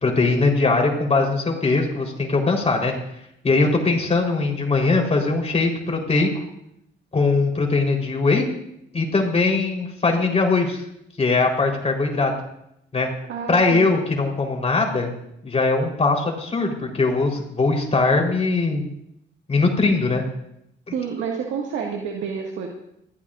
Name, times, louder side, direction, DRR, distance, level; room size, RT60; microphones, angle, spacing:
voice 1, 0.0-2.9 3.4-6.4 7.1-8.5 8.9-10.8 11.2-12.3 12.9-13.1 13.5-15.1 15.4-18.8 19.5-20.2, left 3 dB, 30° left, 1 dB, 3.9 m, -21 dB
voice 2, 13.3-13.8 20.9-22.7, right 6 dB, 80° right, 0 dB, 1.9 m, -29 dB
21.5 x 15.0 x 2.5 m, 0.77 s
cardioid pair, 90°, 20 cm